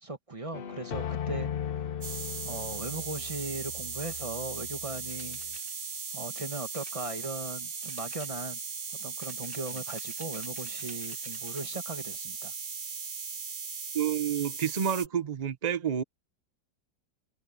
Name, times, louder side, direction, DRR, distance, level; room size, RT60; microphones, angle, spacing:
voice 1, 0.0-1.5 2.4-5.4 6.1-8.6 9.0-12.5, right 2 dB, 20° right, 1.4 m, -38 dB
sound 1, 0.5-5.6, left 9 dB, 75° left, 0.5 m, -38 dB
sound 2, 2.0-15.1, right 5 dB, 40° right, 1.2 m, -38 dB
sound 3, 5.0-5.7 6.7-7.5 7.9-8.7 9.2-11.7, left 2 dB, 30° left, 3.7 m, -54 dB
voice 2, 13.9-16.0, right 8 dB, 60° right, 0.4 m, -29 dB
omnidirectional pair, 2.0 m